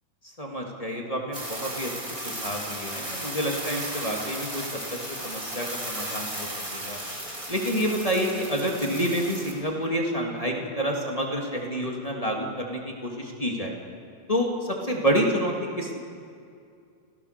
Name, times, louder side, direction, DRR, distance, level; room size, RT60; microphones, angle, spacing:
voice 1, 0.2-4.8 5.2-7.0 7.5-13.7 14.3-16.2, equal, 15° left, 0 dB, 1.6 m, -28 dB
sound 1, 1.3-9.5, right 1 dB, 10° right, 3.8 m, -35 dB
29.0 x 16.0 x 6.6 m, 2.4 s
omnidirectional pair, 3.5 m